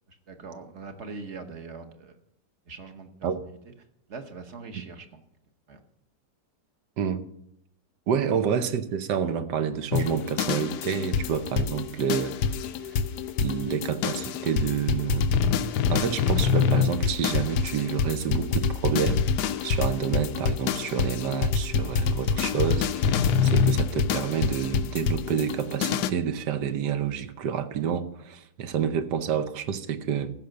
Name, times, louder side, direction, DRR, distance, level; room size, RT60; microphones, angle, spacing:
voice 1, 0.1-2.2 2.7-3.6 4.1-5.2 5.7-5.8, right 4 dB, 45° right, 7 dB, 1.2 m, -42 dB
voice 2, 8.1-12.4 13.4-15.3 15.6-19.2 19.6-30.3, right 8 dB, 80° right, 10 dB, 1.5 m, -28 dB
sound 1, 9.9-26.1, left 6 dB, 75° left, 1.2 m, -26 dB
15.0 x 5.7 x 6.5 m, 0.76 s
omnidirectional pair, 1.8 m